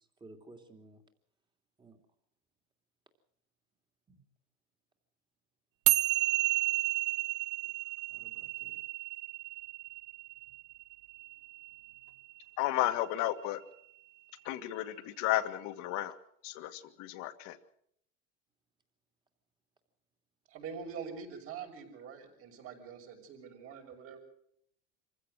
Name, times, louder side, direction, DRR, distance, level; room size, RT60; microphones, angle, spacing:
voice 1, 0.2-1.0 1.8-2.0 4.1-4.2 8.1-8.8, right 2 dB, 15° right, 4 dB, 3.1 m, -55 dB
sound 1, 5.9-12.4, right 19 dB, 70° right, 0.9 m, -32 dB
voice 2, 12.6-13.6 14.5-16.1 16.4-17.6, left 14 dB, 60° left, 8 dB, 2.0 m, -33 dB
voice 3, 20.5-24.2, right 6 dB, 40° right, 2 dB, 6.5 m, -44 dB
26.0 x 16.0 x 6.4 m, 0.70 s
supercardioid pair, 135°, 33 cm